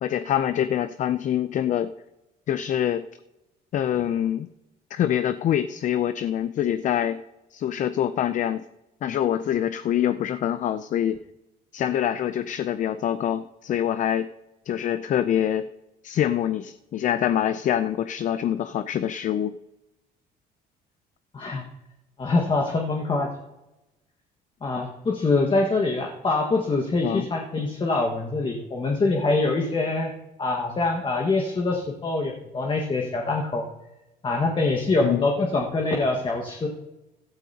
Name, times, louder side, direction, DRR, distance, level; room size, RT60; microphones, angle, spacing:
voice 1, 0.0-1.9 2.5-3.0 3.7-4.5 4.9-7.2 7.5-8.6 9.0-11.2 11.7-14.3 14.7-15.6 16.0-19.5 27.0-27.3 35.0-35.3, left 10 dB, 50° left, 12 dB, 0.5 m, -25 dB
voice 2, 21.3-21.6 22.2-23.3 24.6-30.1 30.4-33.6 34.2-36.7, left 3 dB, 30° left, 1 dB, 1.6 m, -24 dB
14.5 x 13.0 x 2.9 m, 0.96 s
cardioid pair, 110°, 17 cm